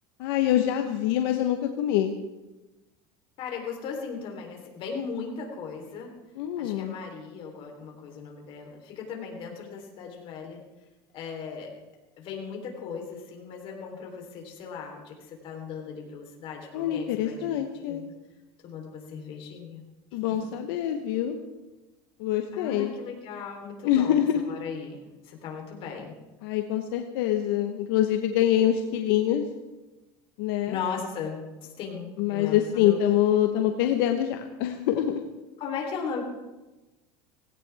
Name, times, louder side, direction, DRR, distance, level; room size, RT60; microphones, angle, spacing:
voice 1, 0.2-2.2 6.4-7.0 16.7-18.0 20.1-21.4 22.2-22.9 23.8-24.4 26.4-29.4 30.4-30.8 32.2-35.2, left 11 dB, 80° left, 5 dB, 1.1 m, -25 dB
voice 2, 3.4-6.1 6.6-10.6 11.1-11.8 12.2-18.0 18.6-19.8 20.1-20.5 22.5-26.2 30.7-33.0 35.6-36.2, left 6 dB, 45° left, 1 dB, 3.6 m, -37 dB
17.5 x 17.0 x 3.5 m, 1.1 s
cardioid pair, 140°, 12 cm